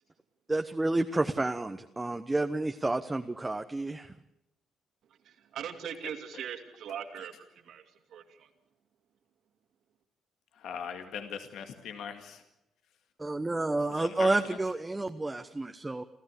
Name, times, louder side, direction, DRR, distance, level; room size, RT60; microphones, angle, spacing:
voice 1, 0.5-4.1 13.2-16.0, right 2 dB, 15° right, 6 dB, 1.1 m, -30 dB
voice 2, 5.5-8.5, right 8 dB, 75° right, 5 dB, 2.7 m, -40 dB
voice 3, 10.6-12.4 13.9-14.6, left 7 dB, 80° left, 7 dB, 2.1 m, -40 dB
28.5 x 14.5 x 8.5 m, 0.86 s
cardioid pair, 90°, 0 cm